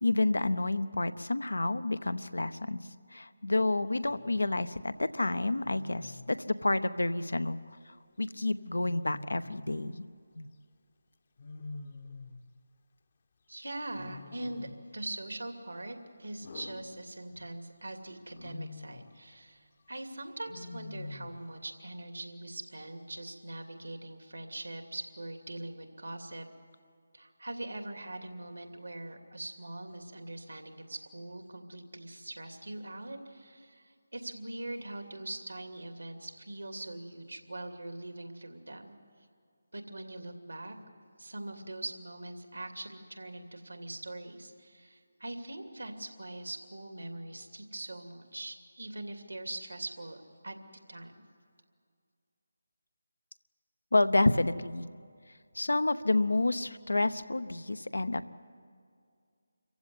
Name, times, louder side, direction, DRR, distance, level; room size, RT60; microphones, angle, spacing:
voice 1, 0.0-2.8 3.1-7.6 8.2-10.0 10.3-10.5 53.9-54.9 55.5-58.2, left 2 dB, 70° left, 12 dB, 0.9 m, -29 dB
Wild animals, 4.1-4.4 5.6-6.4 8.7-9.6 11.4-12.5 13.9-14.9 16.4-17.6 18.3-19.2 20.5-21.5, left 3 dB, 40° left, 1.0 m, -46 dB
voice 2, 13.5-26.5 27.1-38.9 39.7-40.8 41.2-50.6 50.9-51.2, right 1 dB, 70° right, 5 dB, 2.6 m, -42 dB
26.5 x 15.5 x 9.7 m, 2.2 s
figure-of-eight pair, 155°, 0 cm